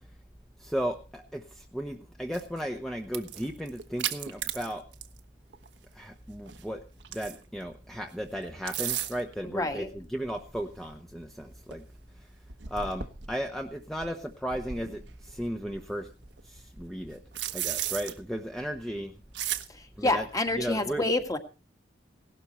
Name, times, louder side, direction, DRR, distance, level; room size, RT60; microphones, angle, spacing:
voice 1, 0.6-1.4 1.7-4.8 6.0-6.8 7.1-11.8 12.7-16.1 16.5-17.2 17.5-19.1 20.0-20.2 20.5-21.1, equal, ahead, 3 dB, 1.0 m, -35 dB
sound 1, 2.3-2.6 3.0-5.2 5.5-5.7 6.5-7.6 8.4-9.3 10.3-10.4 10.9-11.0 11.4-11.5 11.7-11.8 12.4-13.4 14.0-15.8 16.2-18.1 19.3-19.7, right 10 dB, 70° right, 1.3 m, -35 dB
voice 2, 9.4-9.9 20.0-21.4, left 2 dB, 20° left, 6 dB, 1.8 m, -28 dB
17.5 x 12.5 x 4.2 m, 0.33 s
head